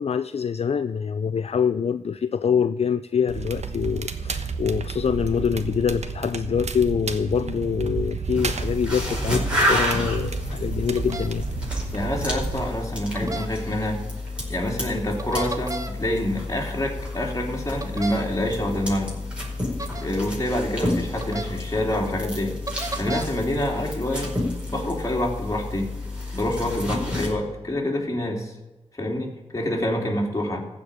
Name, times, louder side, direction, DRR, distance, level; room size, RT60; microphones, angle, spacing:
voice 1, 0.0-11.7, left 7 dB, 60° left, 0.4 m, -25 dB
Crackle, 3.3-12.7, right 5 dB, 70° right, 1.1 m, -31 dB
sound 1, 8.3-27.3, left 1 dB, 10° right, 4.9 m, -30 dB
sound 2, 11.0-11.3 13.1-13.5 15.2-15.9 17.8-18.2 19.8-20.0 21.2-21.4 22.7-23.2, right 2 dB, 25° right, 1.2 m, -32 dB
voice 2, 11.9-14.0 14.5-19.1 20.0-22.6 23.0-24.3 24.7-25.9 26.3-28.5 28.9-30.7, left 1 dB, 25° left, 3.1 m, -27 dB
15.0 x 5.1 x 9.1 m
wide cardioid pair, 70°, 12 cm